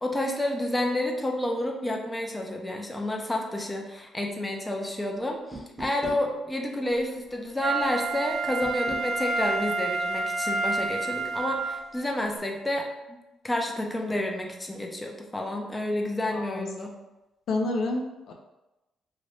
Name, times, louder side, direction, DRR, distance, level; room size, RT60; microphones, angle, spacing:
voice 1, 0.0-13.2 13.4-16.9, left 1 dB, 15° left, 1 dB, 0.5 m, -30 dB
sound 1, 5.5-6.3 8.6-9.1, right 2 dB, 20° right, 0.9 m, -39 dB
Wind instrument woodwind instrument, 7.6-11.9 12.4-12.5, right 3 dB, 70° right, 0.5 m, -29 dB
voice 2, 16.3-16.7 17.5-18.3, left 2 dB, 70° left, 2 dB, 0.4 m, -29 dB
2.9 x 2.6 x 3.2 m, 1.0 s
cardioid pair, 90°, 0 cm